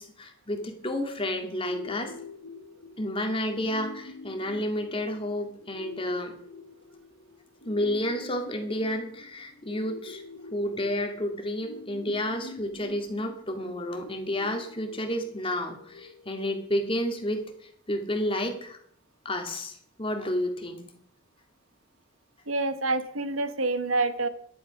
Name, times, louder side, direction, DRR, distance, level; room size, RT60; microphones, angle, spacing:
voice 1, 0.0-2.1 3.0-6.3 7.6-10.2 10.5-17.4 17.9-18.8 19.2-20.9, left 1 dB, 25° left, 5 dB, 2.2 m, -30 dB
sound 1, 1.6-17.6, left 3 dB, 85° left, 1.5 m, -46 dB
voice 2, 22.5-24.3, right 3 dB, 80° right, 11 dB, 1.2 m, -27 dB
12.5 x 10.5 x 5.9 m, 0.63 s
head